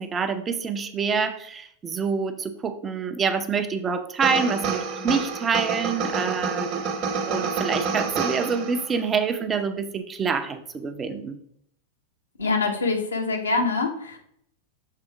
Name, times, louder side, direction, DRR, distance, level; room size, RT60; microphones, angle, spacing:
voice 1, 0.0-6.9 7.2-11.4, right 5 dB, 20° right, 7 dB, 0.6 m, -26 dB
sound 1, 4.2-9.0, right 5 dB, 40° right, 1.1 m, -28 dB
voice 2, 12.4-14.2, left 3 dB, 70° left, 3 dB, 1.1 m, -24 dB
6.7 x 3.5 x 4.8 m, 0.70 s
figure-of-eight pair, 90°, 0 cm